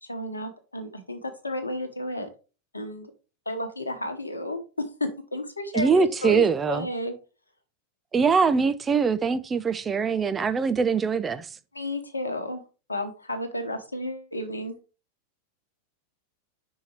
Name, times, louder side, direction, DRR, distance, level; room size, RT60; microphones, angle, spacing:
voice 1, 0.0-2.3 2.7-3.1 3.5-7.1 11.7-12.6 12.9-14.8, left 1 dB, 80° left, 1.1 m, -32 dB
voice 2, 5.7-6.9 8.1-11.5, right 5 dB, 20° right, 0.5 m, -23 dB
5.6 x 4.3 x 4.5 m
figure-of-eight pair, 90°, 0 cm